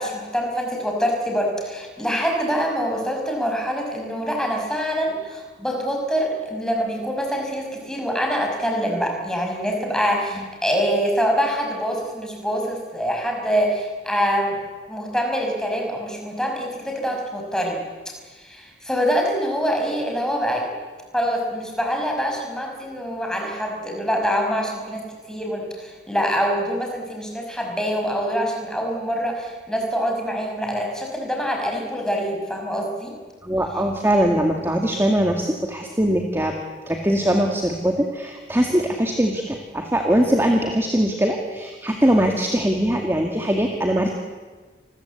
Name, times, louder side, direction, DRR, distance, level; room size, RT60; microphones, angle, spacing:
voice 1, 0.0-14.6 14.9-17.8 18.3-20.7 21.1-33.2, equal, 5° left, 1 dB, 5.7 m, -25 dB
voice 2, 33.4-36.5 36.9-44.1, right 1 dB, 10° right, 2 dB, 2.1 m, -21 dB
29.0 x 21.5 x 8.3 m, 1.4 s
head